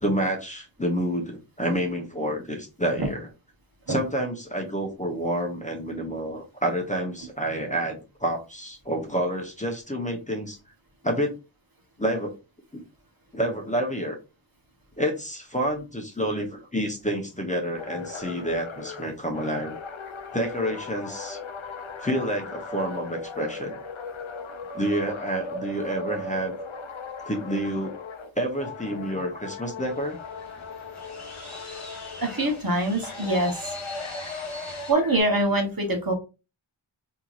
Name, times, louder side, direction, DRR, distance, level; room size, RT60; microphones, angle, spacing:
voice 1, 0.0-3.3 3.9-10.6 11.0-11.3 12.0-12.3 12.7-12.8 13.3-14.2 15.0-19.7 20.3-21.4 22.0-23.8 24.7-26.5 27.2-27.9 28.4-30.2, equal, 15° left, 2 dB, 1.0 m, -28 dB
sound 1, 17.7-28.3 28.6-32.6 33.0-35.2, left 3 dB, 70° left, 0.6 m, -38 dB
sound 2, 29.8-34.9, left 2 dB, 35° left, 1.5 m, -43 dB
voice 2, 32.2-33.7 34.9-36.1, right 1 dB, 45° right, 2 dB, 1.2 m, -24 dB
3.5 x 3.0 x 2.6 m, 0.28 s
wide cardioid pair, 40°, 49 cm